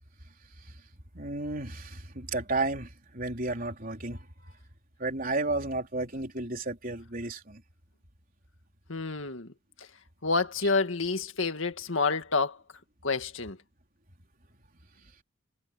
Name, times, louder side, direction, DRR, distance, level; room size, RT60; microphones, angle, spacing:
voice 1, 1.1-4.5 5.0-7.6, right 2 dB, 45° right, 4.0 m, -33 dB
voice 2, 8.9-9.5 10.2-12.6 13.0-13.6, left 4 dB, 75° left, 2.0 m, -28 dB
head